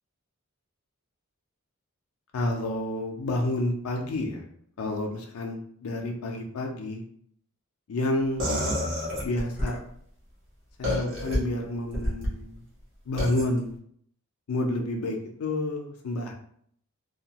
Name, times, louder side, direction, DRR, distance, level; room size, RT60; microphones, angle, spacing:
voice 1, 2.3-4.4 4.8-7.0 7.9-8.5 9.2-9.8 10.8-12.6 13.1-13.7 14.5-16.3, left 1 dB, 75° left, 1 dB, 0.4 m, -29 dB
sound 1, 8.4-9.7 10.8-11.4 11.9-12.3 13.2-13.4, left 1 dB, 55° right, 1.1 m, -28 dB
2.7 x 2.2 x 2.8 m, 0.65 s
head